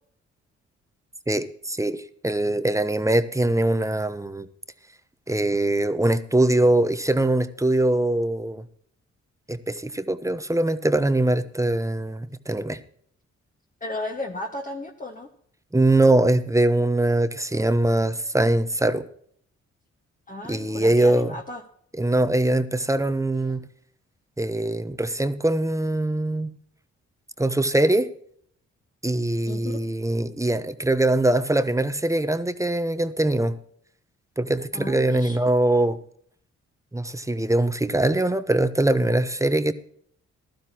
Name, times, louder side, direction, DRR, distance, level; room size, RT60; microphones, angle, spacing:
voice 1, 1.3-4.5 5.3-8.6 9.5-12.8 15.7-19.0 20.5-21.3 22.0-23.6 24.4-26.5 27.4-28.1 29.0-33.6 34.4-36.0 36.9-39.7, right 1 dB, 10° right, 1.1 m, -22 dB
voice 2, 13.8-15.3 20.3-21.6 29.5-29.8 34.7-35.4, left 2 dB, 25° left, 1.7 m, -34 dB
15.0 x 12.0 x 3.0 m
supercardioid pair, 55°, 30 cm